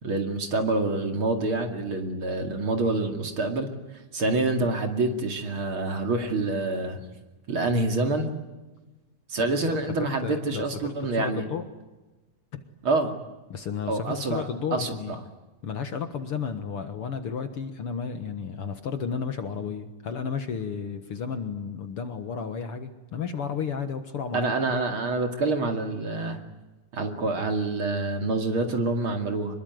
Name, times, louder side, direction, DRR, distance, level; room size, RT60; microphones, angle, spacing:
voice 1, 0.0-3.7 4.1-7.0 7.5-8.3 9.3-11.4 12.8-13.1 13.9-15.2 24.3-26.4 26.9-29.6, right 2 dB, 45° right, 5 dB, 3.0 m, -27 dB
voice 2, 9.4-10.9 11.2-11.6 13.5-15.2 15.6-24.5, left 6 dB, 55° left, 9 dB, 2.1 m, -33 dB
25.5 x 22.0 x 9.5 m, 1.1 s
omnidirectional pair, 3.4 m